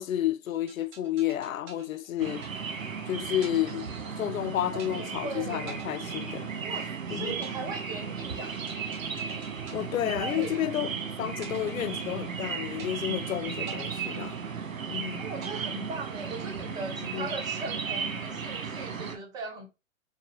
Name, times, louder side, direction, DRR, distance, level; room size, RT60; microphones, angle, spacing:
voice 1, 0.0-2.7 3.1-6.5 7.1-7.4 9.7-10.9 11.2-14.4 14.9-15.2 17.1-17.3, left 12 dB, 80° left, 0.6 m, -31 dB
sound 1, 0.7-3.0 3.4-4.4 4.8-5.3 5.7-6.9 7.4-11.0 11.4-12.4 12.8-13.3 13.7-14.9 15.4-16.4, right 5 dB, 40° right, 1.5 m, -48 dB
sound 2, 2.2-19.2, right 6 dB, 75° right, 1.2 m, -35 dB
voice 2, 4.7-5.7 6.6-8.6 10.2-10.6 15.2-19.7, right 3 dB, 10° right, 0.4 m, -39 dB
5.9 x 2.3 x 3.0 m
hypercardioid pair, 120°, 40 cm